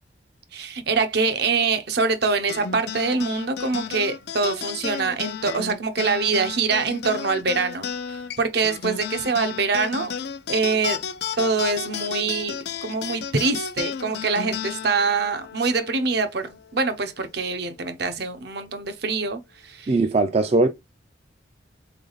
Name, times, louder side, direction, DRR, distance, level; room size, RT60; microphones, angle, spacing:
voice 1, 0.5-10.1 10.5-11.0 11.4-12.5 12.8-19.9, right 4 dB, 65° right, 0.8 m, -24 dB
sound 1, 2.5-17.2, left 7 dB, 65° left, 0.5 m, -33 dB
voice 2, 19.9-20.7, right 3 dB, 35° right, 0.4 m, -19 dB
3.8 x 3.4 x 3.9 m
head